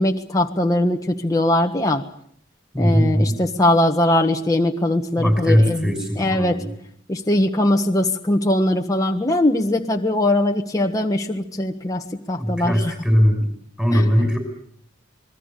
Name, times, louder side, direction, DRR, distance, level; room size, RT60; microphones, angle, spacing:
voice 1, 0.0-2.0 2.8-6.6 7.1-12.7 13.9-14.0, left 1 dB, 20° left, 2 dB, 1.5 m, -21 dB
voice 2, 2.7-3.4 5.2-6.7 12.4-13.5 13.8-14.4, equal, 5° right, 5 dB, 5.8 m, -19 dB
27.0 x 21.0 x 6.8 m, 0.63 s
head